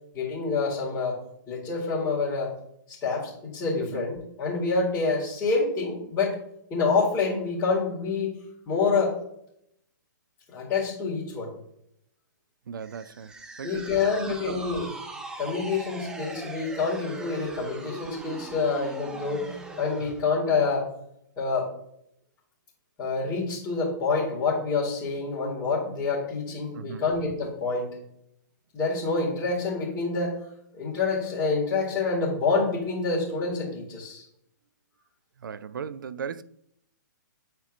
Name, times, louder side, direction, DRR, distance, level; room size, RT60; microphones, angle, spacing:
voice 1, 0.1-1.2 1.5-2.5 2.9-6.4 6.7-8.4 8.7-9.1 10.5-11.5 13.6-14.9 15.4-19.5 19.8-20.9 21.4-21.7 23.0-27.9 28.7-30.3 30.7-34.2, left 4 dB, 20° left, 2.0 m, -27 dB
voice 2, 12.7-13.3 13.6-14.6 26.7-27.0 35.4-36.4, right 7 dB, 80° right, 0.4 m, -37 dB
sound 1, 12.8-20.2, right 3 dB, 5° right, 0.4 m, -40 dB
9.3 x 4.4 x 2.5 m
hypercardioid pair, 140°, 11 cm